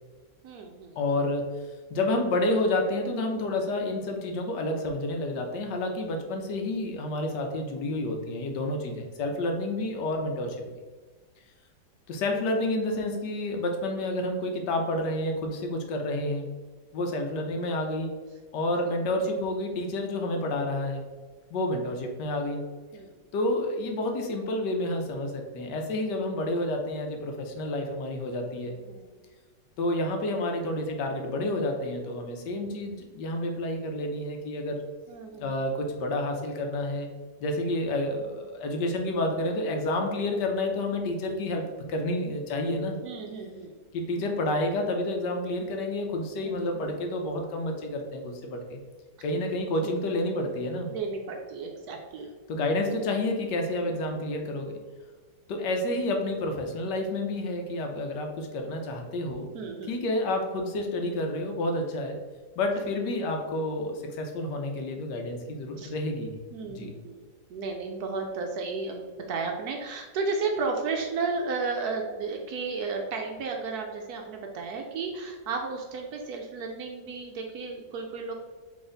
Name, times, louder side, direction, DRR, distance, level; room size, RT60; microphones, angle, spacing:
voice 1, 0.4-0.9 22.9-23.1 28.9-29.1 35.1-35.6 43.0-43.7 46.4-47.0 49.8-49.9 50.9-52.3 59.5-59.9 65.8-65.9 66.5-67.2 67.5-78.4, right 4 dB, 70° right, 2 dB, 1.0 m, -33 dB
voice 2, 1.0-1.5 1.9-10.7 12.1-16.5 16.9-18.1 18.5-21.0 21.5-22.6 23.3-28.7 29.8-34.8 35.4-37.1 37.4-43.0 43.9-48.8 49.2-50.9 52.5-54.7 55.5-59.5 59.9-62.2 62.6-66.4 66.7-66.9, left 1 dB, 75° left, 3 dB, 1.3 m, -29 dB
4.0 x 3.4 x 3.8 m, 1.4 s
omnidirectional pair, 1.9 m